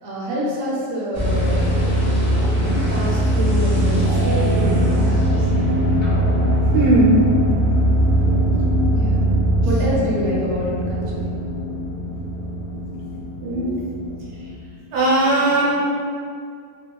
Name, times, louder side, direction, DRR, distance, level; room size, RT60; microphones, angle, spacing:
voice 1, 0.0-2.0 2.5-5.5 8.9-9.4 9.6-11.3, equal, 60° right, -6 dB, 0.8 m, -27 dB
sound 1, 1.1-14.5, right 1 dB, 15° left, 0.5 m, -20 dB
voice 2, 6.7-7.2 13.4-13.8 14.9-15.8, right 2 dB, 75° right, -6 dB, 1.3 m, -18 dB
2.9 x 2.7 x 2.2 m, 2.2 s
omnidirectional pair, 1.9 m